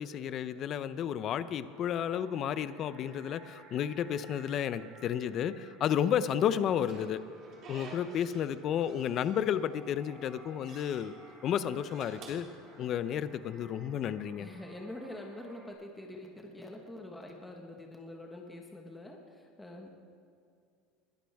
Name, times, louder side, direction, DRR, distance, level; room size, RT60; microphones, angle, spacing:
voice 1, 0.0-7.2 7.7-11.1 11.4-12.5 12.8-14.5, left 9 dB, 40° left, 14 dB, 0.5 m, -32 dB
sound 1, 1.1-15.7, right 2 dB, 25° right, 3.5 m, -56 dB
Slam / Squeak, 6.5-8.5 8.8-9.8 10.2-11.0 11.7-13.3, right 3 dB, 40° right, 3.8 m, -51 dB
voice 2, 14.4-19.9, left 1 dB, 5° left, 1 dB, 1.4 m, -45 dB
21.0 x 12.5 x 3.5 m, 2.4 s
supercardioid pair, 145°, 0 cm